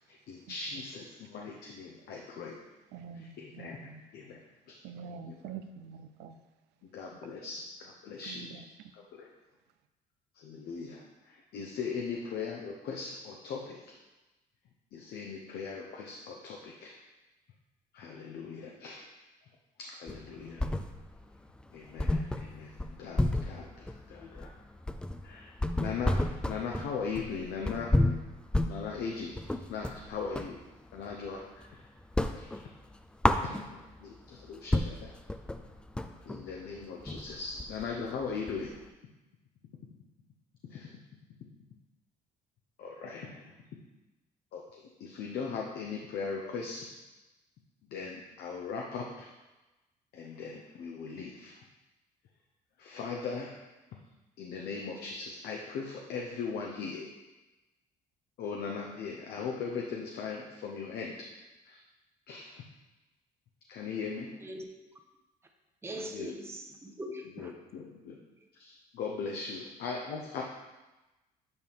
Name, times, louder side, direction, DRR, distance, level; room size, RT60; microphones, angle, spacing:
voice 1, 0.1-2.6 3.4-3.8 4.1-4.4 5.3-5.4 6.8-8.5 8.9-9.3 10.4-13.8 14.9-16.9 17.9-19.1 19.8-20.7 21.7-24.5 25.2-27.9 28.6-29.4 29.7-30.6 30.9-31.8 32.3-32.7 33.4-35.1 36.3-38.7 40.7-40.9 42.8-43.5 44.5-44.6 45.0-46.9 47.9-49.3 50.1-51.5 52.8-53.6 54.4-57.1 58.4-61.1 61.7-61.8 62.3-62.6 63.7-64.3 65.9-66.3 67.4-68.2 68.6-70.4, left 5 dB, 70° left, 0 dB, 0.8 m, -39 dB
voice 2, 2.9-4.0 4.8-6.4 7.1-7.5 8.2-8.9, right 6 dB, 85° right, 9 dB, 0.5 m, -46 dB
sound 1, 20.1-21.2 21.6-21.7 22.0-30.6 31.0-31.7 32.0-34.0 34.4-34.5 34.7-38.9, left 1 dB, 5° left, 0.3 m, -31 dB
voice 3, 65.8-67.5 69.6-69.7, equal, 15° right, 3 dB, 0.8 m, -41 dB
8.1 x 4.7 x 3.5 m, 1.1 s
cardioid pair, 110°, 17 cm